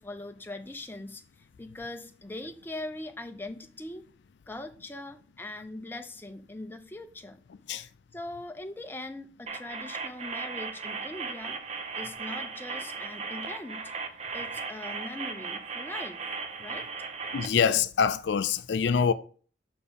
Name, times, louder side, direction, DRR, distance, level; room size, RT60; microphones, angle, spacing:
voice 1, 0.0-4.1 4.5-7.4 7.7-11.6 12.0-13.9 14.3-16.2 16.6-16.9, left 2 dB, 10° left, 0.6 m, -41 dB
sound 1, 9.5-17.5, right 5 dB, 35° right, 0.7 m, -37 dB
voice 2, 17.3-19.1, left 6 dB, 70° left, 0.4 m, -25 dB
5.9 x 4.3 x 5.1 m
head